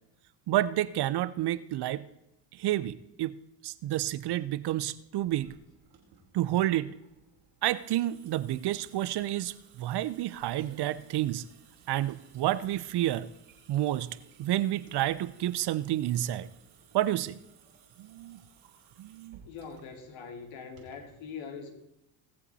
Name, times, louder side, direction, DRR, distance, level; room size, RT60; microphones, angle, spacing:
voice 1, 0.5-2.0 2.5-3.4 3.6-5.5 6.3-6.9 7.6-11.4 11.9-13.3 13.7-16.5 16.9-17.4 18.0-18.4 19.0-19.4, right 14 dB, 55° right, 17 dB, 0.7 m, -30 dB
Water tap faucet / Sink (filling or washing) / Drip, 5.2-21.2, right 6 dB, 80° right, 3.7 m, -59 dB
voice 2, 19.5-21.7, left 5 dB, 70° left, 4 dB, 2.6 m, -42 dB
21.5 x 7.2 x 4.2 m, 0.88 s
supercardioid pair, 70°, 48 cm